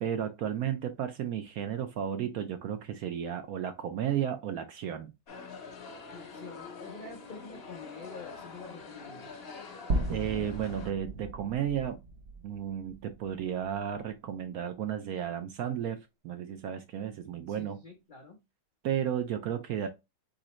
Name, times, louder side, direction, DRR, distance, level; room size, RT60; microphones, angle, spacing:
voice 1, 0.0-5.1 10.1-12.0 12.4-17.8 18.8-19.9, right 9 dB, 70° right, 0.9 m, -33 dB
sound 1, 5.3-10.9, left 4 dB, 45° left, 0.8 m, -46 dB
voice 2, 6.1-9.3 17.5-18.4, left 4 dB, 75° left, 0.4 m, -47 dB
sound 2, 9.9-14.1, right 1 dB, 90° right, 0.5 m, -36 dB
4.1 x 3.8 x 3.0 m
omnidirectional pair, 1.9 m